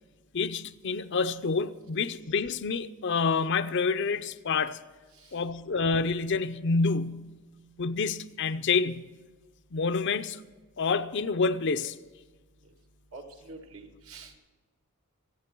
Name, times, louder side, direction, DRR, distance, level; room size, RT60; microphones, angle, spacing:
voice 1, 0.3-4.8 5.3-7.4 7.8-9.1 9.7-10.4 10.8-11.9, left 4 dB, 55° left, 0.6 m, -28 dB
voice 2, 13.1-14.4, right 3 dB, 80° right, 2.2 m, -46 dB
26.0 x 9.0 x 4.6 m
head